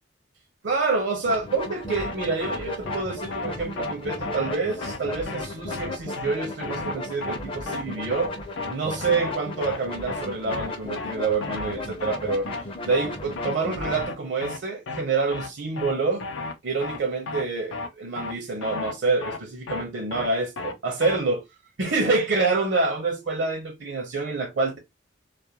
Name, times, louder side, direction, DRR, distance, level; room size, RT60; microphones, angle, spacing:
voice 1, 0.6-8.3 8.7-12.5 12.8-16.3 16.6-21.4 21.8-24.8, right 3 dB, 65° right, 0.6 m, -27 dB
sound 1, 1.2-14.0, left 1 dB, 30° left, 0.5 m, -35 dB
sound 2, 2.0-2.1 2.4-2.6 2.9-3.0 3.3-3.5 3.8-3.9 4.2-4.5 4.8-5.0 5.3-5.4 5.7-5.9 6.2-6.3 6.6-6.9 7.2-7.4 7.7-7.8 8.1-8.3 8.6-8.7 9.0-9.3 9.6-9.8 10.1-10.2 10.5-10.7 11.0-11.1 11.4-11.7 12.0-12.2 12.5-12.6 12.9-13.1 13.4-13.5 13.8-14.1 14.4-14.6 14.9-15.0 15.3-15.5 15.8-15.9 16.2-16.5 16.8-17.0 17.3-17.4 17.7-17.9 18.2-18.3 18.6-18.9 19.2-19.4 19.7-19.8 20.1-20.3 20.6-20.7 21.0-21.2, left 3 dB, 85° left, 0.4 m, -33 dB
2.4 x 2.1 x 2.7 m
head